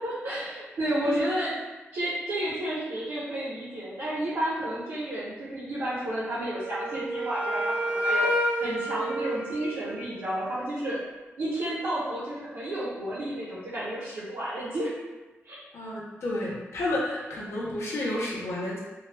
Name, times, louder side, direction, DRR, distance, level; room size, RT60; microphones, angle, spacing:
voice 1, 0.0-1.5 1.9-8.3 8.6-11.0 11.4-14.9 15.4-15.6, right 1 dB, 75° right, -10 dB, 0.7 m, -31 dB
Wind instrument woodwind instrument, 6.5-10.4, equal, 30° right, 0.4 m, -29 dB
voice 2, 15.7-18.8, left 1 dB, 75° left, -5 dB, 0.6 m, -31 dB
2.2 x 2.0 x 3.1 m, 1.2 s
wide cardioid pair, 155°, 5 cm